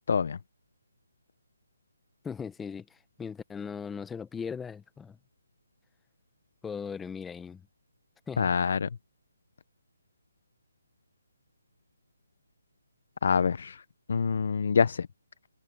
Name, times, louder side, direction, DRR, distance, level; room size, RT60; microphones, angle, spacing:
voice 1, 0.1-0.4 8.4-8.9 13.2-13.8 14.1-15.1, left 6 dB, 50° left, 0.6 m, -25 dB
voice 2, 2.2-5.2 6.6-7.6 8.3-8.5, left 6 dB, 5° left, 0.7 m, -38 dB
hypercardioid pair, 170°, 0 cm